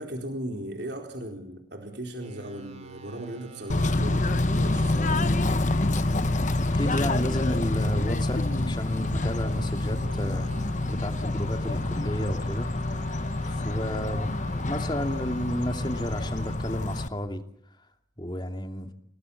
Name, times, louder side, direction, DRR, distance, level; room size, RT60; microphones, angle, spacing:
voice 1, 0.0-5.3, right 1 dB, 60° right, 3 dB, 4.2 m, -37 dB
sound 1, 2.2-16.6, right 2 dB, 35° right, 3.5 m, -47 dB
Bird / Train, 3.7-17.1, left 2 dB, 40° left, 1.1 m, -27 dB
voice 2, 6.7-10.5 10.9-12.7 13.4-17.4 18.2-18.9, equal, 25° left, 5 dB, 2.7 m, -32 dB
29.0 x 19.5 x 8.6 m, 0.63 s
head